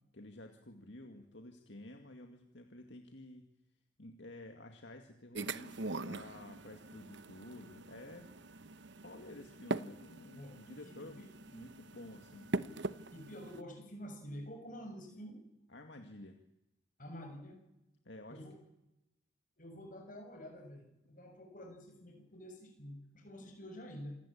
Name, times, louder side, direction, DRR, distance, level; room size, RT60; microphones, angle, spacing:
voice 1, 0.1-3.5 4.0-8.3 9.0-11.2 11.5-12.5 15.7-16.4 18.0-18.4, left 1 dB, 65° left, 4 dB, 2.2 m, -51 dB
sound 1, 5.3-13.6, right 3 dB, 65° right, 1.0 m, -43 dB
voice 2, 10.3-11.3 13.1-15.4 17.0-17.6 18.3-18.5 19.6-24.2, equal, 40° left, 3 dB, 6.7 m, -48 dB
27.5 x 18.0 x 8.8 m, 0.89 s
head